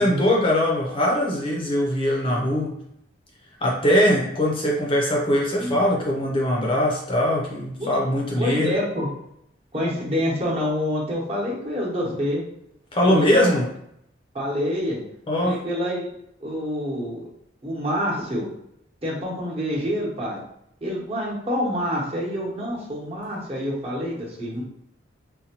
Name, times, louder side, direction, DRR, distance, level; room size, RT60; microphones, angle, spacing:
voice 1, 0.0-2.8 3.6-8.7 12.9-13.7 15.3-15.6, equal, 30° left, -2 dB, 0.5 m, -21 dB
voice 2, 8.3-9.1 9.7-12.4 13.0-13.6 14.3-15.0 15.4-16.1 16.4-17.3 17.6-18.5 19.0-20.4 20.8-24.6, equal, 30° right, -4 dB, 0.9 m, -27 dB
4.0 x 2.2 x 2.9 m, 0.76 s
head